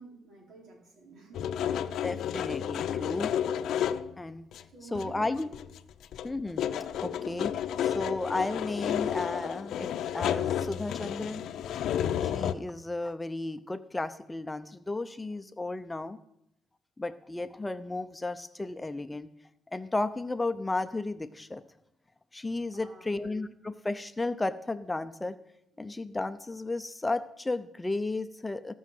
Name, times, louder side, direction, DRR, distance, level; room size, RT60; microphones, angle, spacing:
voice 1, 0.0-1.5 4.7-5.5 22.7-23.2, right 4 dB, 70° right, 1 dB, 4.0 m, -50 dB
sound 1, 1.3-4.2 4.5-4.6 4.9-5.8 6.0-12.5, left 9 dB, 75° left, 0.6 m, -31 dB
voice 2, 2.0-3.3 4.2-4.5 4.9-5.5 6.2-6.6 7.0-7.5 7.8-11.4 12.2-16.2 17.0-19.3 19.7-21.6 22.3-25.4 25.8-28.7, left 2 dB, 15° left, 11 dB, 0.6 m, -34 dB
18.0 x 6.4 x 7.6 m, 0.79 s
cardioid pair, 90°, 0 cm